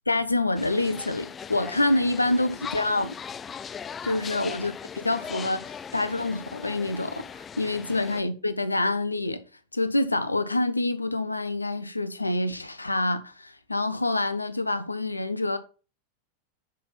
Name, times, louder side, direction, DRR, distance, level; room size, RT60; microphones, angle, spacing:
voice 1, 0.1-3.1 4.0-9.4 9.7-15.6, left 2 dB, 85° left, 0.8 m, -27 dB
sound 1, 0.5-8.2, left 7 dB, 20° left, 0.3 m, -39 dB
6.2 x 6.0 x 5.8 m
figure-of-eight pair, 90°, 0 cm